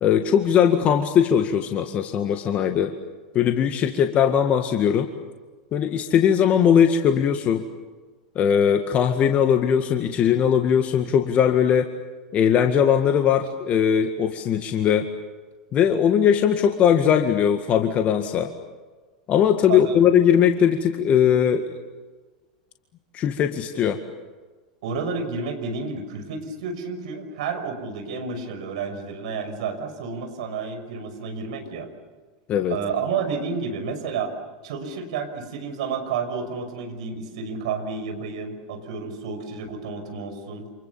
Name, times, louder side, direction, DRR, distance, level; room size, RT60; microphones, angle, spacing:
voice 1, 0.0-3.0 3.3-5.1 5.7-7.7 8.4-11.9 12.3-15.1 15.7-18.5 19.3-21.8 23.1-24.0 32.5-32.8, left 8 dB, 35° left, 6 dB, 1.9 m, -20 dB
voice 2, 24.8-31.9 32.7-34.3 34.6-40.7, right 5 dB, 65° right, 7 dB, 6.1 m, -30 dB
29.0 x 28.0 x 7.2 m, 1.3 s
figure-of-eight pair, 90°, 4 cm